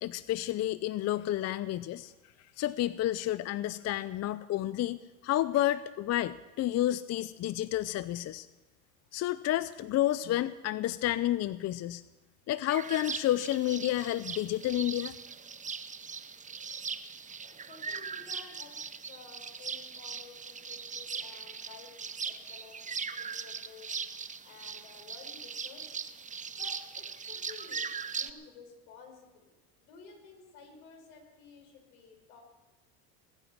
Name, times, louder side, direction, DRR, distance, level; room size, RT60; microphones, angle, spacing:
voice 1, 0.0-2.1 2.6-8.5 9.1-12.0 12.5-15.1, left 13 dB, 35° left, 16 dB, 0.5 m, -30 dB
sound 1, 12.7-28.3, right 5 dB, 15° right, 0.8 m, -40 dB
voice 2, 17.4-23.9 24.4-26.0 26.6-32.4, left 5 dB, 75° left, 3 dB, 5.4 m, -53 dB
20.0 x 9.6 x 7.4 m, 1.1 s
hypercardioid pair, 85°, 43 cm